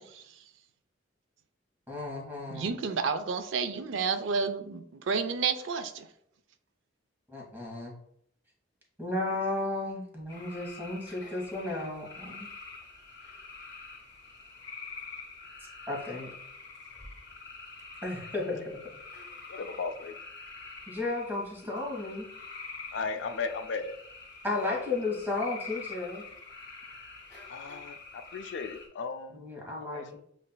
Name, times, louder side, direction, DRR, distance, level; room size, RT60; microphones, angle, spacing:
voice 1, 1.9-2.8 7.3-7.9 9.0-12.5 15.9-16.3 18.0-18.8 20.9-22.3 24.4-26.2 29.3-30.2, left 2 dB, 10° right, -1 dB, 1.2 m, -34 dB
voice 2, 2.5-6.1, right 5 dB, 80° right, 10 dB, 0.4 m, -30 dB
sound 1, 10.3-28.9, left 4 dB, 20° left, 1.7 m, -46 dB
voice 3, 19.5-20.1 22.9-24.0 24.6-24.8 27.5-29.4 29.9-30.2, left 4 dB, 65° left, 8 dB, 0.4 m, -36 dB
7.3 x 2.5 x 2.2 m, 0.71 s
head